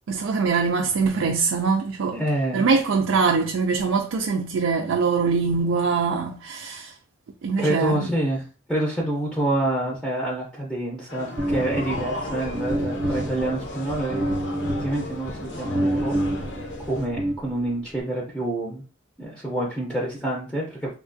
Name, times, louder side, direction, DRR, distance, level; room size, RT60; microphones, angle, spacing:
voice 1, 0.1-2.2 2.5-6.9 7.4-8.0, right 4 dB, 85° right, 0.4 m, -23 dB
voice 2, 2.1-2.6 7.6-8.4 8.7-14.3 14.6-16.2 16.9-18.8 19.2-20.9, right 1 dB, 5° left, 0.5 m, -27 dB
sound 1, 11.1-17.1, left 2 dB, 65° left, 0.7 m, -36 dB
sound 2, 11.4-18.0, right 1 dB, 35° right, 0.7 m, -28 dB
3.4 x 2.4 x 2.5 m
head